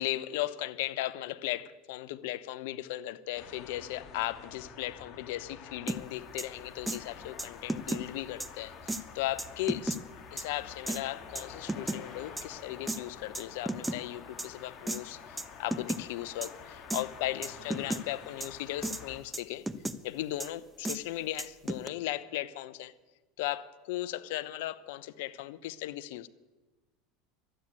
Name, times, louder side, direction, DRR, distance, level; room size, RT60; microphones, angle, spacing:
voice 1, 0.0-10.0 10.3-19.7 20.0-22.9 23.4-26.3, left 15 dB, 70° left, 15 dB, 0.7 m, -37 dB
sound 1, 3.3-19.2, left 6 dB, 45° left, 1.9 m, -49 dB
sound 2, 5.9-6.0 6.4-6.5 6.9-7.0 7.4-8.0 8.4-8.5 8.9-9.0 9.4-10.0 10.4-10.5 10.9-11.0 11.4-12.0 12.4-12.5 12.9-13.0 13.3-14.0 14.4-14.5 14.9-15.0 15.4-15.5 15.7-16.0 16.4-16.5 16.9-17.0 17.4-18.0 18.4-18.5 18.8-19.0 19.3-20.0 20.4-20.5 20.8-21.0 21.4-21.9, right 1 dB, 10° right, 0.9 m, -33 dB
12.5 x 8.9 x 9.6 m, 1.2 s
hypercardioid pair, 90°, 0 cm